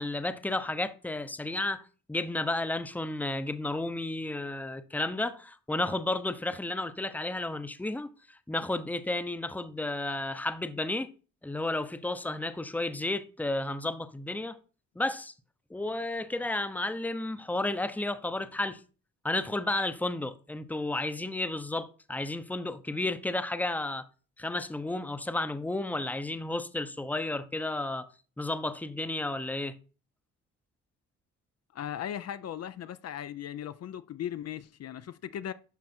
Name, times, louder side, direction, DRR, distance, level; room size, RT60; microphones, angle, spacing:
voice 1, 0.0-11.1 11.4-14.6 15.0-15.3 15.7-18.8 19.2-24.0 24.4-28.1 28.4-29.7, left 2 dB, 5° left, 0.8 m, -32 dB
voice 2, 31.7-35.5, left 10 dB, 55° left, 0.6 m, -38 dB
12.0 x 4.8 x 4.4 m
cardioid pair, 90°, 30 cm